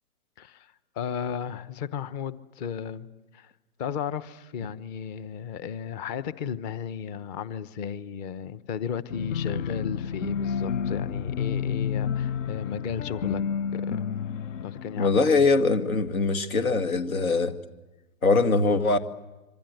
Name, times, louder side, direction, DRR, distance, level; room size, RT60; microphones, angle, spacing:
voice 1, 1.0-3.1 3.3-3.5 3.8-13.4 13.7-14.1 14.6-15.2, left 7 dB, 30° left, 1.1 m, -34 dB
sound 1, 9.1-15.9, left 7 dB, 60° left, 0.8 m, -30 dB
voice 2, 15.0-17.6 18.2-19.0, left 3 dB, 75° left, 2.2 m, -22 dB
26.5 x 25.0 x 8.0 m
hypercardioid pair, 135°, 42 cm